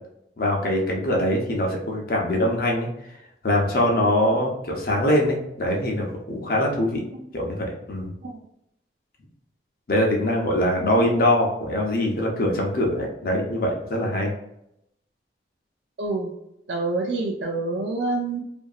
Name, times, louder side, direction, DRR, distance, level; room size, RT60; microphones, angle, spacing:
voice 1, 0.4-2.9 3.4-7.0 7.3-8.1 9.9-14.3, left 1 dB, 55° left, 0 dB, 0.7 m, -23 dB
voice 2, 16.0-16.3 16.7-18.4, right 3 dB, 80° right, 1 dB, 0.4 m, -27 dB
2.8 x 2.5 x 2.4 m, 0.79 s
head